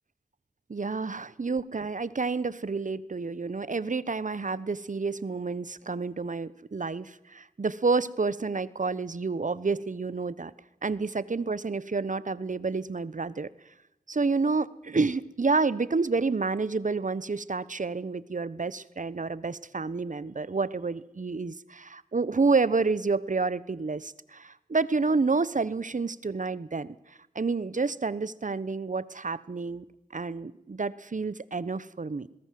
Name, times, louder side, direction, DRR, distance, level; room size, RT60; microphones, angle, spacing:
voice 1, 0.7-10.5 10.8-13.5 14.1-29.8 30.1-32.3, right 4 dB, 55° right, 17 dB, 1.1 m, -29 dB
21.5 x 19.5 x 7.7 m, 0.87 s
cardioid pair, 40°, 15 cm